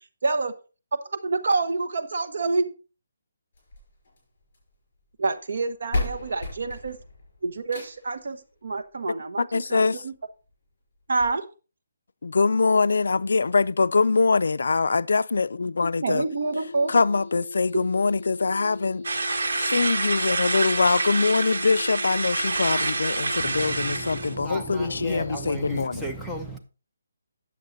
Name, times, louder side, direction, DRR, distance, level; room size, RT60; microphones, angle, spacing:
voice 1, 0.2-0.5 1.1-2.7 5.2-7.0 7.4-10.1 11.1-11.4 16.0-16.9 17.7-17.8, right 3 dB, 55° right, 1.0 m, -27 dB
sound 1, 3.5-4.7 5.6-5.7 5.9-8.2 9.5-9.6 10.1-10.2 10.5-10.6 11.2-11.3, left 2 dB, 40° left, 5.4 m, -33 dB
voice 2, 9.4-10.0 12.2-16.2 16.9-19.0 19.6-26.0, left 4 dB, 70° left, 0.3 m, -23 dB
sound 2, 16.0-25.9, left 3 dB, 25° left, 1.6 m, -40 dB
sound 3, 19.0-24.3, right 3 dB, 75° right, 1.5 m, -27 dB
voice 3, 23.3-26.6, right 2 dB, ahead, 0.7 m, -35 dB
9.2 x 7.1 x 3.9 m
hypercardioid pair, 175°, 0 cm